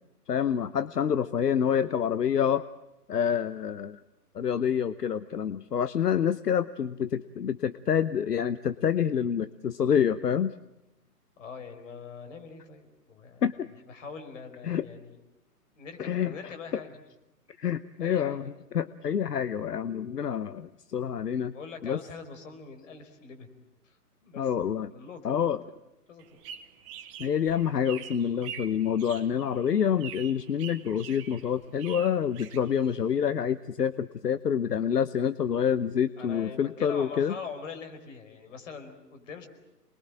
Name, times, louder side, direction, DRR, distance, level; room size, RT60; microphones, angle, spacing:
voice 1, 0.3-2.6 3.1-4.0 4.3-10.5 13.4-13.7 14.6-14.8 16.0-16.5 17.6-21.5 21.8-22.0 24.4-24.9 25.2-25.6 27.2-37.4, left 8 dB, 75° left, 14 dB, 1.0 m, -27 dB
voice 2, 11.4-13.4 13.8-15.2 15.8-17.0 18.0-18.5 21.5-23.5 23.8-24.0 24.2-25.7 26.1-26.4 36.2-39.5, left 5 dB, 50° left, 6 dB, 5.0 m, -43 dB
sound 1, 26.2-33.2, right 9 dB, 20° right, 1.1 m, -45 dB
28.5 x 21.5 x 9.0 m, 0.94 s
hypercardioid pair, 145°, 48 cm